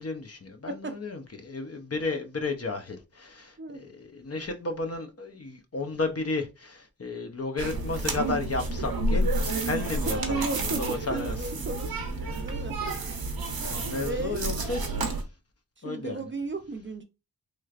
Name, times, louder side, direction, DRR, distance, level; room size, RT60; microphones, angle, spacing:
voice 1, 0.0-11.7 12.2-12.3 13.6-14.8 15.1-15.2 15.8-16.2, left 3 dB, 40° left, 0.7 m, -33 dB
sound 1, 7.6-15.2, right 2 dB, 85° right, 0.8 m, -30 dB
voice 2, 10.0-11.9 12.2-12.8 14.1-14.5 15.8-17.0, right 3 dB, 35° right, 0.5 m, -34 dB
3.2 x 3.1 x 2.4 m
wide cardioid pair, 60°, 36 cm